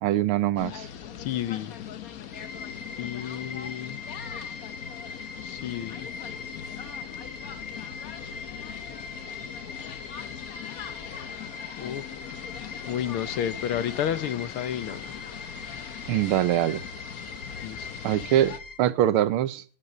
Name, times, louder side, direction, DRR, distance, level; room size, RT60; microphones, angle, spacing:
voice 1, 0.0-0.9 16.1-16.8 18.0-19.6, right 12 dB, 85° right, 16 dB, 1.7 m, -23 dB
sound 1, 0.6-18.6, left 8 dB, 55° left, 1.1 m, -40 dB
voice 2, 1.2-1.8 3.0-4.0 5.4-6.1 11.8-12.0 12.9-15.1 17.6-17.9, left 10 dB, 85° left, 14 dB, 1.9 m, -31 dB
sound 2, 2.3-18.7, left 4 dB, 25° left, 4.5 m, -41 dB
13.5 x 10.0 x 6.6 m, 0.41 s
omnidirectional pair, 2.3 m